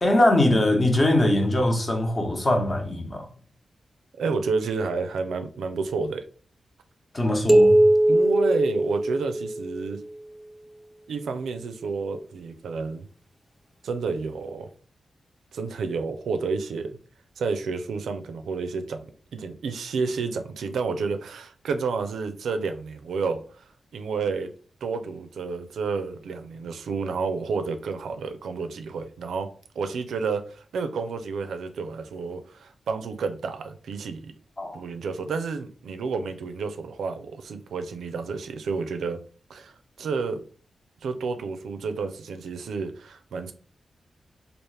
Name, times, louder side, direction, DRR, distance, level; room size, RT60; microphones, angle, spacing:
voice 1, 0.0-3.2 7.1-7.8 34.6-34.8, left 1 dB, 35° left, 1.0 m, -22 dB
voice 2, 4.2-6.3 8.1-10.0 11.1-13.1 13.8-14.7 15.5-17.0 17.4-23.6 23.9-24.5 24.8-29.5 29.8-34.3 34.7-39.2 39.5-40.4 41.0-43.5, right 4 dB, 85° right, 0.4 m, -30 dB
sound 1, 7.5-9.9, right 1 dB, ahead, 0.6 m, -20 dB
3.4 x 2.4 x 3.2 m
cardioid pair, 50°, 0 cm